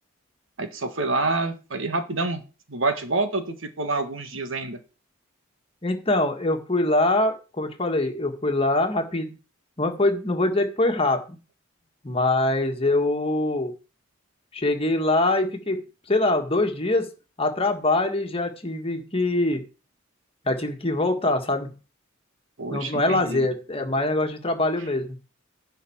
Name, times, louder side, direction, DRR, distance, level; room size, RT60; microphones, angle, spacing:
voice 1, 0.6-2.4 2.7-4.8 22.6-23.5, right 3 dB, 70° right, 8 dB, 1.5 m, -27 dB
voice 2, 5.8-9.3 9.8-11.4 12.0-13.7 14.5-15.8 16.1-17.1 17.4-19.6 20.4-21.7 22.7-25.1, left 2 dB, 25° left, 5 dB, 1.7 m, -23 dB
11.0 x 4.3 x 7.2 m, 0.33 s
head